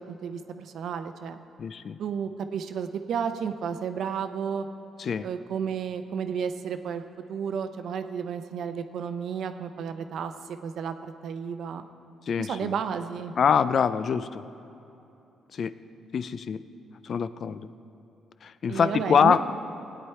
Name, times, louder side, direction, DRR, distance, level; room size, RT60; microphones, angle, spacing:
voice 1, 0.0-1.4 2.0-4.7 5.2-7.0 7.3-10.3 10.6-11.9 12.4-13.3 18.7-19.4, right 7 dB, 70° right, 9 dB, 0.6 m, -32 dB
voice 2, 1.6-2.0 5.0-5.3 12.3-12.7 13.4-14.4 15.5-15.7 16.1-16.6 17.0-17.7 18.4-19.4, left 7 dB, 55° left, 13 dB, 0.4 m, -24 dB
16.5 x 9.5 x 4.5 m, 3.0 s
cardioid pair, 90°, 0 cm